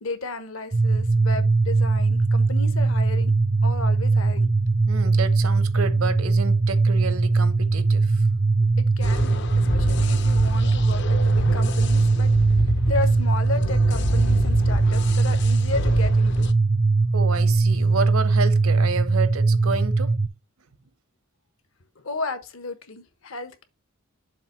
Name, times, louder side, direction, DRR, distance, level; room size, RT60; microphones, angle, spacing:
voice 1, 0.0-3.3 3.6-4.5 8.8-12.3 12.9-16.5 22.0-23.6, left 3 dB, 70° left, 1.2 m, -33 dB
sound 1, 0.7-20.3, right 3 dB, 30° right, 0.5 m, -20 dB
voice 2, 4.9-8.3 17.1-20.1, right 4 dB, 80° right, 1.0 m, -30 dB
sound 2, 9.0-16.5, left 2 dB, 55° left, 0.6 m, -29 dB
7.2 x 3.1 x 5.9 m
head